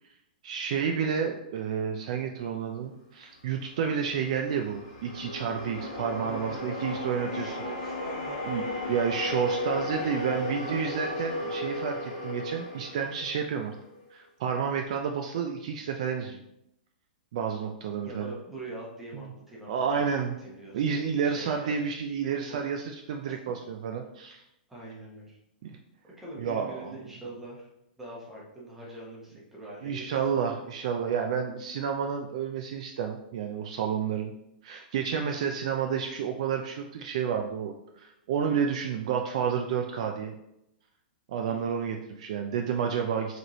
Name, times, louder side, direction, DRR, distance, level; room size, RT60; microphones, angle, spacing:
voice 1, 0.4-7.6 8.5-8.6 8.9-13.8 14.1-16.4 17.3-18.3 19.1-19.3 19.7-20.4 20.7-24.4 25.6-25.8 26.4-26.9 29.8-34.3 34.6-40.3 41.3-43.4, right 7 dB, 45° right, 3 dB, 0.3 m, -30 dB
sound 1, 3.6-14.0, left 2 dB, 35° left, 0.9 m, -35 dB
voice 2, 6.1-7.0 7.3-9.4 9.6-11.0 18.0-19.7 20.0-20.1 20.4-21.8 22.5-22.7 23.3-23.4 24.7-25.4 26.2-27.7 28.0-30.4 41.5-41.8, right 2 dB, 5° right, -5 dB, 0.9 m, -44 dB
4.9 x 3.1 x 3.0 m, 0.83 s
hypercardioid pair, 170°, 5 cm